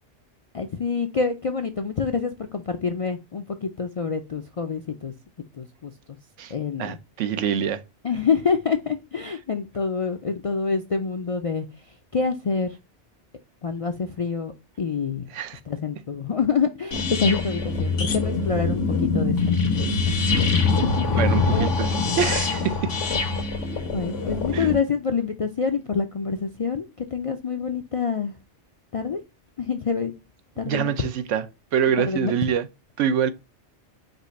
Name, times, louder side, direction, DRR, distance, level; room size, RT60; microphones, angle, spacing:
voice 1, 0.5-5.1 5.6-5.9 6.5-7.0 8.0-11.7 12.1-12.7 13.6-14.5 14.8-15.3 15.7-19.7 20.1-20.2 21.0-21.1 21.5-21.7 23.9-26.8 27.1-28.3 28.9-29.2 29.6-30.1 30.6-30.9 32.0-32.3, left 5 dB, 55° left, 0.4 m, -26 dB
voice 2, 6.8-7.8 9.3-9.4 15.3-15.6 21.2-22.9 24.5-24.7 30.6-31.5 31.7-32.7 33.0-33.3, right 8 dB, 85° right, 1.0 m, -25 dB
sound 1, 16.9-24.8, left 4 dB, 85° left, 1.4 m, -24 dB
5.2 x 2.5 x 4.0 m
omnidirectional pair, 1.2 m